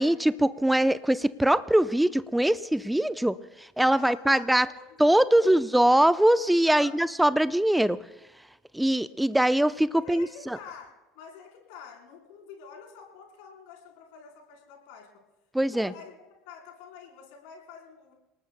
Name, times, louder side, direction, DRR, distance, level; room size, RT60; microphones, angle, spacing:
voice 1, 0.0-3.4 3.8-4.7 5.0-8.0 8.7-10.3 15.5-15.9, right 1 dB, 5° right, 15 dB, 0.6 m, -22 dB
voice 2, 3.9-5.6 6.6-7.0 9.9-15.1 15.7-18.1, left 6 dB, 65° left, 0 dB, 4.1 m, -47 dB
28.5 x 19.0 x 2.2 m, 1.0 s
figure-of-eight pair, 70°, 0 cm